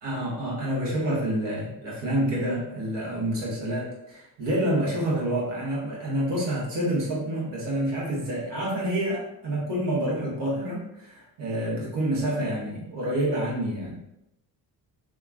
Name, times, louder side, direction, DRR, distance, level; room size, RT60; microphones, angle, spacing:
voice 1, 0.0-14.0, right 1 dB, 60° right, -4 dB, 1.4 m, -28 dB
2.8 x 2.4 x 2.4 m, 0.85 s
supercardioid pair, 60°, 48 cm